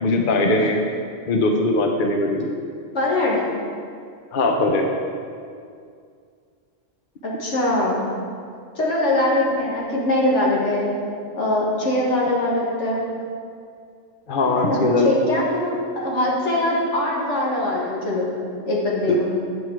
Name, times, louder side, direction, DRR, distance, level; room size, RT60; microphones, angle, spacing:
voice 1, 0.0-0.8 1.3-2.5 4.3-4.9 14.3-15.1 19.1-19.2, left 2 dB, 50° left, 2 dB, 0.8 m, -20 dB
voice 2, 2.9-3.4 7.2-8.0 8.8-10.9 11.4-13.0 14.6-18.3 18.7-19.3, left 1 dB, 70° left, -4 dB, 1.9 m, -22 dB
9.4 x 6.1 x 4.6 m, 2.3 s
omnidirectional pair, 1.3 m